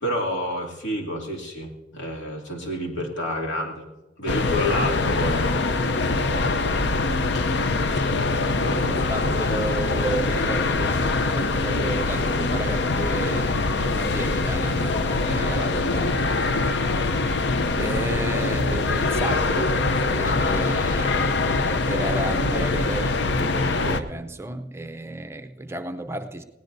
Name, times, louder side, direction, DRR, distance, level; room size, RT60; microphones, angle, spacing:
voice 1, 0.0-3.9 4.2-5.6 8.6-9.2, left 1 dB, 85° left, -1 dB, 2.6 m, -29 dB
sound 1, 4.3-24.0, left 3 dB, 65° left, 0.7 m, -23 dB
voice 2, 5.9-6.5 8.9-16.2 17.8-19.8 20.2-26.4, right 2 dB, 15° right, 8 dB, 0.6 m, -33 dB
20.5 x 17.5 x 2.7 m, 1.1 s
head